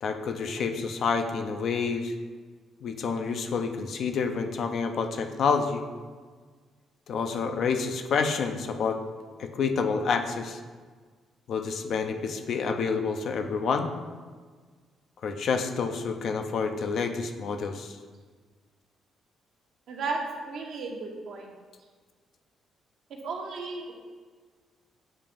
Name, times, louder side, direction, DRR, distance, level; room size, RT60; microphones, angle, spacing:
voice 1, 0.0-2.2 2.8-5.8 7.1-9.0 9.4-10.6 11.5-13.9 15.2-18.0, left 5 dB, 65° left, 6 dB, 0.5 m, -28 dB
voice 2, 19.9-21.5 23.1-23.9, right 3 dB, 70° right, 1 dB, 0.9 m, -34 dB
7.4 x 2.5 x 5.1 m, 1.5 s
cardioid pair, 90°, 0 cm